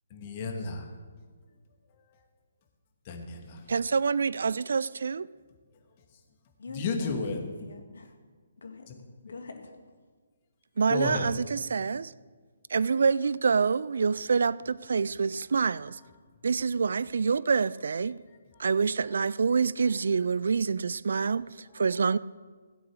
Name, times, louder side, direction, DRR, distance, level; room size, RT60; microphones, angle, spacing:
voice 1, 0.1-0.8 3.1-3.6 6.7-7.4 10.9-11.3, left 4 dB, 35° left, 2.4 m, -32 dB
voice 2, 3.7-5.3 10.8-12.1 12.7-16.0 16.4-18.2 18.6-22.2, right 5 dB, 60° right, 0.3 m, -26 dB
voice 3, 6.6-8.1 8.6-8.9 9.2-9.7, left 4 dB, 65° left, 2.5 m, -43 dB
16.0 x 8.2 x 6.4 m
figure-of-eight pair, 135°, 0 cm